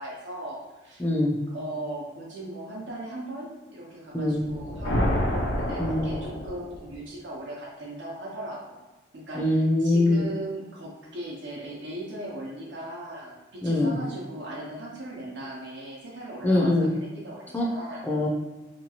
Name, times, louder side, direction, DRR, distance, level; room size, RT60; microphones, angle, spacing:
voice 1, 0.0-1.0 1.5-8.8 9.1-18.0, right 1 dB, 85° right, -5 dB, 0.6 m, -38 dB
voice 2, 1.0-1.4 4.1-4.4 5.8-6.1 9.3-10.2 13.6-14.0 16.4-16.9 17.5-17.7 18.0-18.3, left 2 dB, 10° left, -3 dB, 0.4 m, -23 dB
sound 1, 4.4-7.0, equal, 80° left, 0.4 m, -28 dB
2.8 x 2.3 x 2.8 m, 1.1 s
head